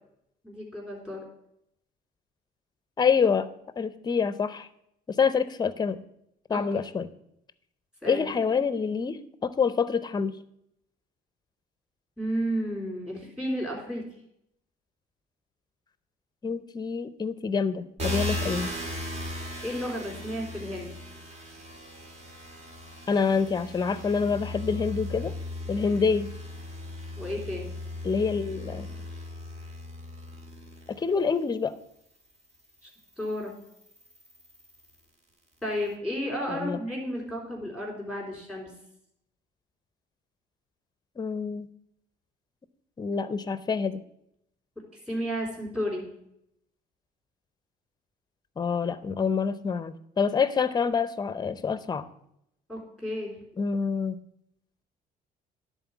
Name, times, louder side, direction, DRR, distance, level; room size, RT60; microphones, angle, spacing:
voice 1, 0.4-1.2 6.5-6.8 8.0-8.6 12.2-14.0 19.6-20.9 27.2-27.7 32.8-32.9 33.2-33.5 35.6-38.7 45.1-46.1 52.7-53.4, equal, 5° right, -1 dB, 3.7 m, -32 dB
voice 2, 3.0-3.5 3.8-4.7 5.2-6.0 6.5-7.1 8.0-10.3 16.4-18.7 23.1-25.3 25.7-26.3 28.0-28.9 31.0-31.7 36.5-36.8 41.2-41.7 43.0-44.0 48.6-52.1 53.6-54.2, left 5 dB, 25° left, 14 dB, 0.6 m, -26 dB
sound 1, 18.0-31.4 32.1-35.0, left 1 dB, 40° right, 1.9 m, -37 dB
10.5 x 4.1 x 7.1 m, 0.76 s
cardioid pair, 110°, 17 cm